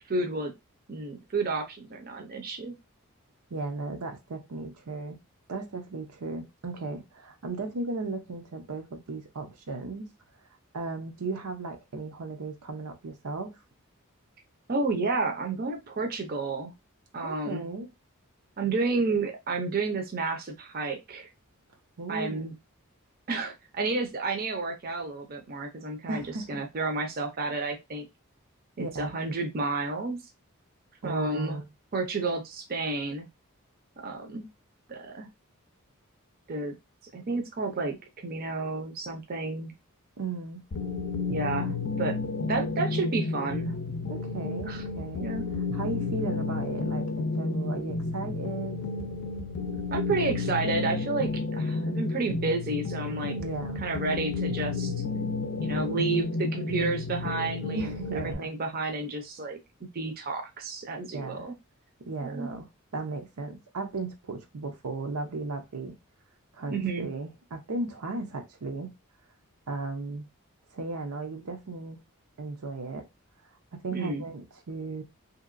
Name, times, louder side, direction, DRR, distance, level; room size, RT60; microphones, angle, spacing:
voice 1, 0.1-0.5 0.9-2.7 14.7-16.7 17.1-17.7 18.6-21.3 22.1-22.5 23.3-28.1 28.8-30.2 31.0-31.6 31.9-33.3 34.0-34.5 34.9-35.3 36.5-36.7 37.1-39.7 41.3-42.2 42.5-43.8 44.7-44.8 45.2-45.5 49.9-53.4 53.8-54.9 55.6-59.6 59.9-61.5 62.2-62.5 66.7-67.1 73.9-74.2, right 3 dB, 40° right, 0.6 m, -31 dB
voice 2, 3.5-5.2 5.5-10.1 10.7-13.5 17.2-17.9 22.0-22.5 26.1-26.6 28.8-29.1 31.0-31.7 40.2-40.6 44.1-45.3 45.7-48.8 53.4-53.8 57.7-58.5 61.1-61.5 62.1-66.0 66.5-68.9 69.7-70.3 70.7-72.0 72.4-73.1 73.7-75.0, right 3 dB, 85° right, 0.7 m, -36 dB
sound 1, 40.7-58.3, left 3 dB, 50° left, 0.5 m, -31 dB
2.8 x 2.8 x 2.5 m
head